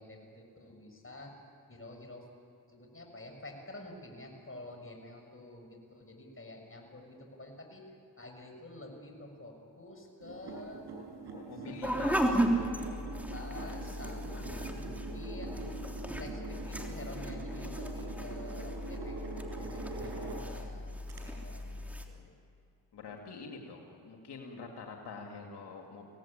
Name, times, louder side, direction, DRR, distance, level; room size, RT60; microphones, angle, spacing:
voice 1, 0.0-1.3 1.7-2.3 2.7-7.8 8.2-10.8 11.6-12.5 13.0-15.6 16.2-19.2 19.6-22.4, left 1 dB, 35° left, 3 dB, 6.8 m, -49 dB
sound 1, 10.2-20.7 21.1-21.2, right 3 dB, 85° right, 5.4 m, -43 dB
voice 2, 11.4-12.7 22.9-26.1, left 4 dB, 90° left, 1 dB, 2.4 m, -45 dB
sound 2, 11.8-22.0, equal, 5° right, 3.2 m, -36 dB
25.0 x 17.5 x 8.8 m, 2.7 s
cardioid pair, 55°, 39 cm